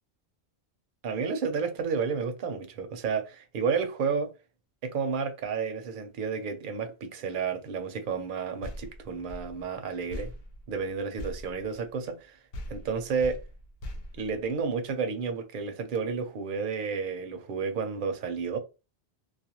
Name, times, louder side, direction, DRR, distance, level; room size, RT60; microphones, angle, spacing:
voice 1, 1.0-4.3 4.8-10.3 10.7-12.4 12.7-13.4 14.1-18.6, right 5 dB, 60° right, 0.7 m, -31 dB
sound 1, 8.6-12.2 12.5-15.0, left 1 dB, 70° left, 0.8 m, -42 dB
2.4 x 2.2 x 2.8 m
omnidirectional pair, 1.1 m